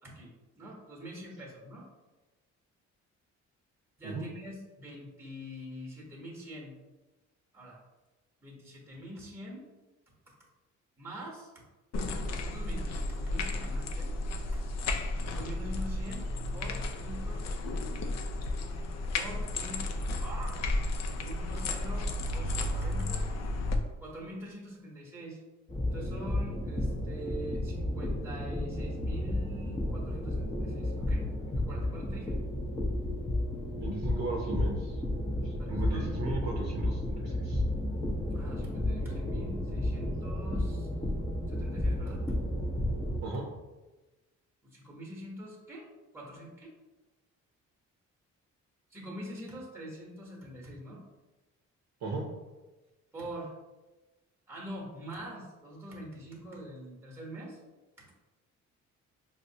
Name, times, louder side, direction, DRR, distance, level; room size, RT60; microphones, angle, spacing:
voice 1, 0.0-1.9 4.0-6.8 7.5-7.8 8.4-9.7 10.3-10.4 11.0-11.5 12.3-14.1 14.5-14.6 15.2-17.5 19.1-20.6 21.2-23.3 24.0-25.4 25.9-31.3 31.5-32.4 35.6-36.2 38.3-40.9 41.5-42.4 44.6-45.9 46.1-46.7 48.9-51.0 53.1-53.5 54.5-57.6 58.0-58.1, right 1 dB, 10° right, -2 dB, 1.0 m, -44 dB
sound 1, 11.9-23.8, left 2 dB, 60° left, 0.5 m, -33 dB
sound 2, 25.7-43.2, left 1 dB, 15° left, 0.6 m, -32 dB
voice 2, 33.8-34.9 35.4-37.6 43.2-43.4 52.0-52.3, right 3 dB, 55° right, -1 dB, 0.6 m, -36 dB
4.7 x 2.1 x 2.7 m, 1.1 s
cardioid pair, 90°, 30 cm